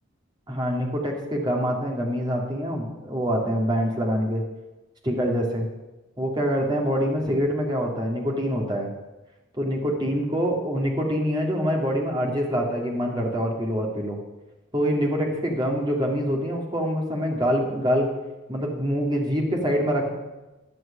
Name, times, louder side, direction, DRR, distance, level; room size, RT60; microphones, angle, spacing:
voice 1, 0.5-4.4 5.0-5.7 6.2-8.9 9.6-14.2 14.7-18.1 18.5-20.1, equal, 20° right, -1 dB, 2.2 m, -25 dB
11.0 x 6.3 x 8.7 m, 1.1 s
head